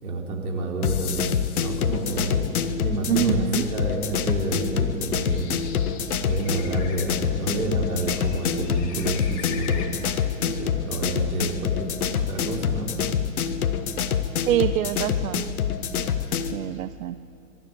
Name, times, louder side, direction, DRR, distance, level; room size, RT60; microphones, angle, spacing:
voice 1, 0.0-3.4 3.7-5.5 6.2-9.9 10.4-11.9 12.2-12.9, right 2 dB, 85° right, 0 dB, 4.3 m, -29 dB
sound 1, 0.8-16.6, left 7 dB, 80° left, 1.4 m, -26 dB
voice 2, 3.1-3.6 14.5-15.5 16.5-17.2, right 13 dB, 70° right, 13 dB, 0.7 m, -25 dB
Bird, 4.9-10.4, left 6 dB, 50° left, 2.8 m, -43 dB
22.0 x 13.0 x 9.2 m, 2.6 s
hypercardioid pair, 125°, 43 cm